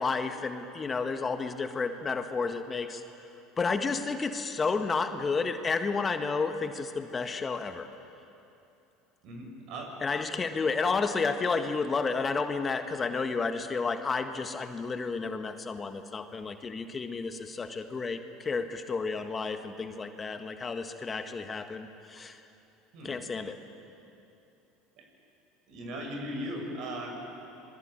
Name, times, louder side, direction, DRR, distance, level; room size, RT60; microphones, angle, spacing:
voice 1, 0.0-3.0 3.6-7.9 10.0-22.4 23.0-23.6, left 4 dB, 25° left, 7 dB, 1.6 m, -31 dB
voice 2, 9.2-9.9 22.9-23.2 25.0-25.1 25.7-27.1, equal, 60° right, 2 dB, 6.9 m, -38 dB
26.5 x 21.5 x 9.0 m, 2.8 s
hypercardioid pair, 80°, 0 cm